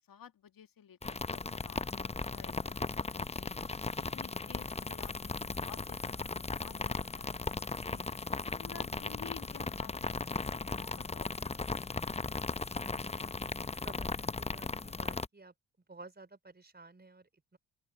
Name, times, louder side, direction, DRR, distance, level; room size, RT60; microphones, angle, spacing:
voice 1, 0.1-2.7 3.2-3.5 4.0-11.6, left 8 dB, 55° left, 2.0 m, -54 dB
sound 1, 1.0-15.3, left 3 dB, 15° left, 0.8 m, -37 dB
voice 2, 13.8-15.5 15.9-17.6, right 3 dB, 25° right, 4.3 m, -53 dB
open air
supercardioid pair, 55°, 42 cm